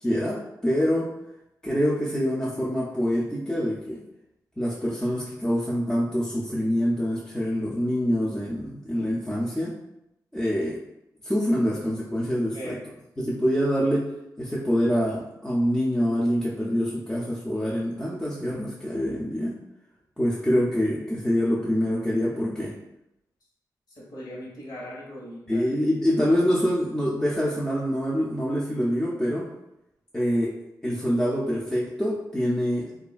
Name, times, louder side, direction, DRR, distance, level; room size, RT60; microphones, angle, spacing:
voice 1, 0.0-1.1 1.6-4.0 4.6-9.8 10.3-10.8 11.2-12.8 13.2-14.1 14.4-19.5 20.2-22.8 25.5-29.5 30.1-30.5 30.8-33.0, equal, 10° left, -6 dB, 0.5 m, -25 dB
voice 2, 12.5-12.8 23.9-25.7, equal, 65° left, -5 dB, 1.1 m, -39 dB
2.7 x 2.4 x 2.3 m, 0.87 s
cardioid pair, 75°, 7 cm